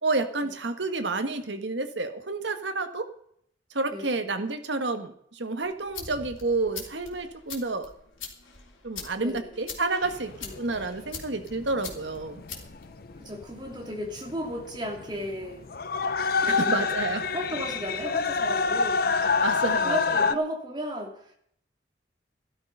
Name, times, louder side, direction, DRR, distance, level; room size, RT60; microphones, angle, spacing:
voice 1, 0.0-3.1 3.7-7.9 8.8-12.4 16.6-17.2 19.4-20.2, right 3 dB, 65° right, 8 dB, 1.4 m, -29 dB
sound 1, 5.6-13.7, left 6 dB, 90° left, 3.3 m, -44 dB
voice 2, 9.2-9.7 10.4-10.9 13.2-15.6 16.4-16.8 17.3-19.0 19.7-21.3, equal, 25° right, 1 dB, 2.8 m, -35 dB
sound 2, 10.0-20.3, left 5 dB, 50° left, 0.7 m, -27 dB
13.5 x 12.0 x 5.5 m, 0.68 s
head